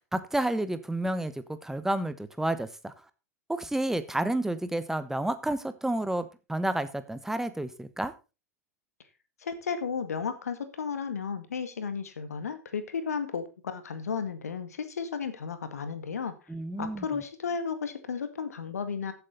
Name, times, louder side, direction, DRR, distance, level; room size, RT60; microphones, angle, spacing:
voice 1, 0.1-1.3 1.6-2.9 3.5-8.1 16.5-17.0, right 1 dB, 5° right, 12 dB, 1.2 m, -30 dB
voice 2, 9.4-16.3 16.8-19.1, left 6 dB, 75° left, 10 dB, 1.9 m, -33 dB
14.5 x 8.0 x 4.1 m, 0.31 s
figure-of-eight pair, 90°, 8 cm